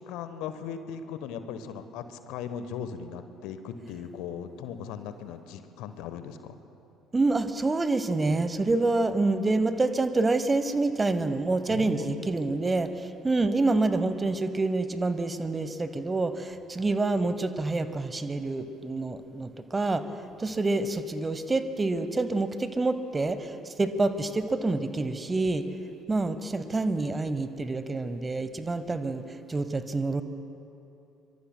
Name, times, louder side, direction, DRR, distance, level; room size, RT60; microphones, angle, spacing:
voice 1, 0.0-6.6 11.7-12.3 20.5-20.6, left 7 dB, 65° left, 10 dB, 0.9 m, -38 dB
voice 2, 7.1-20.0 20.4-25.6 26.1-30.2, right 3 dB, 20° right, 12 dB, 0.9 m, -27 dB
24.5 x 23.5 x 2.2 m, 2.8 s
figure-of-eight pair, 55°, 0 cm